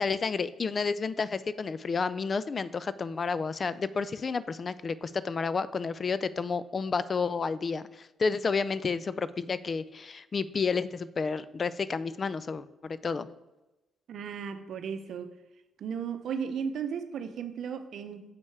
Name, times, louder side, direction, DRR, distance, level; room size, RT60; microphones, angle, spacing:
voice 1, 0.0-13.3, left 5 dB, 40° left, 15 dB, 0.3 m, -31 dB
voice 2, 14.1-15.3 15.8-18.2, right 7 dB, 65° right, 9 dB, 0.7 m, -35 dB
6.7 x 5.4 x 4.7 m, 1.0 s
cardioid pair, 90°, 0 cm